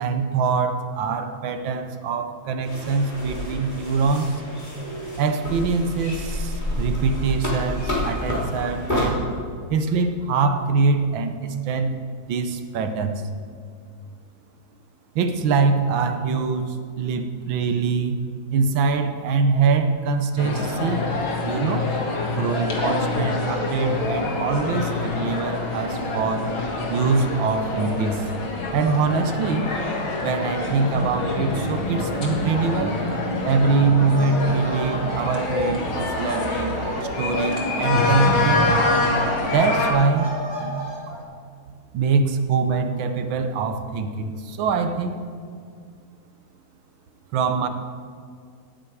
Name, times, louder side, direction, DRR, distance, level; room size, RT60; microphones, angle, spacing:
voice 1, 0.0-4.4 5.2-9.2 9.7-12.0 12.2-13.3 15.1-18.2 18.5-21.1 21.4-21.9 22.3-26.5 26.9-28.3 28.7-29.7 30.2-33.0 33.4-38.8 39.4-40.3 40.6-40.7 41.1-41.2 41.9-45.2 47.3-47.7, right 4 dB, 75° right, 8 dB, 1.7 m, -23 dB
sound 1, 2.6-9.0, left 1 dB, 20° left, 3.6 m, -29 dB
sound 2, 20.4-39.9, left 2 dB, 85° left, 2.6 m, -26 dB
sound 3, 32.5-33.0 33.3-41.2, left 1 dB, 15° right, 2.5 m, -33 dB
17.5 x 9.1 x 4.7 m, 2.1 s
omnidirectional pair, 2.1 m